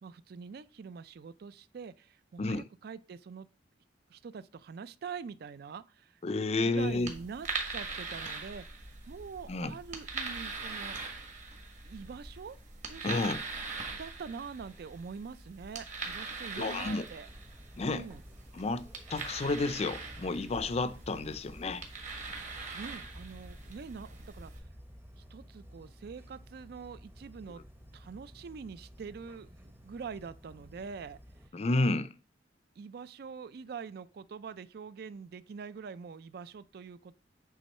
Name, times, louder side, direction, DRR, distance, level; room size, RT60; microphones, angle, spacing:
voice 1, 0.0-3.5 4.1-6.2 6.6-11.0 11.9-12.6 12.9-13.3 13.9-17.3 17.8-18.2 22.7-24.7 25.2-27.6 27.9-31.2 32.8-37.1, right 5 dB, 60° right, 0.4 m, -44 dB
voice 2, 6.2-7.1 9.5-9.7 13.0-13.4 16.6-17.0 17.8-18.1 18.6-21.8 31.5-32.1, left 2 dB, 35° left, 0.4 m, -31 dB
sound 1, 6.8-24.6, right 4 dB, 45° right, 1.5 m, -42 dB
sound 2, 17.3-31.5, equal, 15° right, 0.7 m, -52 dB
8.4 x 3.6 x 4.2 m
head